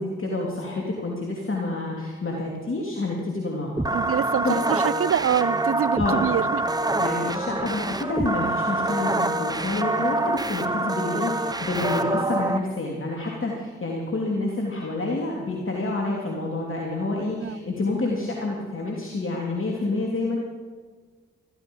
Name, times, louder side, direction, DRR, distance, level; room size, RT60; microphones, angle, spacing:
voice 1, 0.0-4.0 4.4-4.5 6.0-6.2 7.0-20.4, left 2 dB, 40° left, -2 dB, 2.9 m, -28 dB
sound 1, 3.8-12.6, right 2 dB, 15° right, 1.1 m, -26 dB
voice 2, 3.9-6.7 17.4-17.6, right 9 dB, 45° right, 20 dB, 0.5 m, -25 dB
14.5 x 14.0 x 5.5 m, 1.5 s
supercardioid pair, 40°, 30 cm